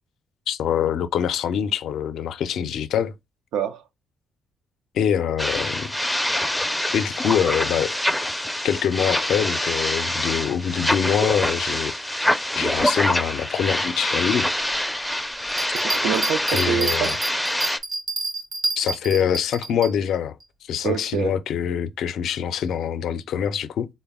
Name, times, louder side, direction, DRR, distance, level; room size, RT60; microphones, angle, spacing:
voice 1, 0.5-3.1 4.9-5.9 6.9-8.0 8.6-14.5 16.5-17.1 18.8-20.3 20.7-23.9, left 8 dB, 75° left, 0.4 m, -24 dB
voice 2, 3.5-3.8 15.7-17.2 20.8-21.3, right 8 dB, 85° right, 0.4 m, -26 dB
sound 1, 5.4-17.8, left 1 dB, 5° left, 0.4 m, -25 dB
Bell, 15.5-19.9 20.4-20.5, right 2 dB, 60° right, 1.0 m, -28 dB
3.9 x 2.1 x 3.5 m
cardioid pair, 90°, 0 cm